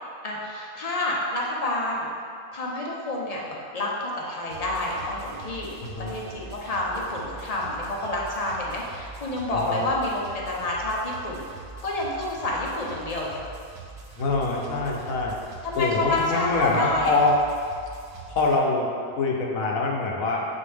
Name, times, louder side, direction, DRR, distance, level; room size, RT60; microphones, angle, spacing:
voice 1, 0.2-2.1 2.5-11.4 11.8-13.4 15.6-17.2, left 2 dB, 35° left, -3 dB, 0.7 m, -29 dB
sound 1, 4.5-18.6, right 4 dB, 70° right, 1.2 m, -44 dB
voice 2, 5.8-6.2 9.5-9.8 14.2-15.3 15.8-17.4 18.3-20.4, left 3 dB, 65° left, -1 dB, 1.2 m, -24 dB
7.5 x 4.2 x 3.4 m, 2.3 s
omnidirectional pair, 1.6 m